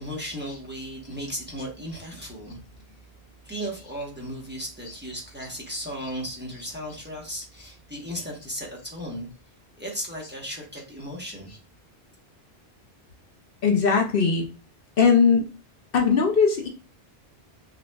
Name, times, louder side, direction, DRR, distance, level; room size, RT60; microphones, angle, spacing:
voice 1, 0.0-2.6 3.4-9.3 9.8-11.5, equal, 10° right, -2 dB, 1.0 m, -35 dB
voice 2, 13.6-14.5 15.0-15.5 15.9-16.7, left 5 dB, 65° left, 2 dB, 0.8 m, -19 dB
5.6 x 2.4 x 2.2 m, 0.33 s
omnidirectional pair, 1.1 m